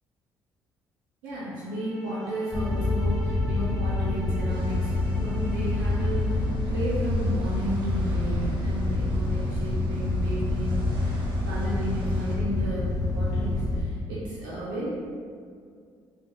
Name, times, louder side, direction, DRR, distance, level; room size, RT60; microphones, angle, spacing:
voice 1, 1.2-14.9, right 1 dB, 90° right, -8 dB, 0.4 m, -33 dB
sound 1, 1.7-6.6, left 4 dB, 5° left, 0.8 m, -43 dB
sound 2, 2.5-13.8, left 2 dB, 35° left, 0.4 m, -27 dB
sound 3, 4.5-12.4, equal, 55° right, 0.7 m, -46 dB
2.5 x 2.1 x 2.8 m, 2.2 s
supercardioid pair, 60°, 10 cm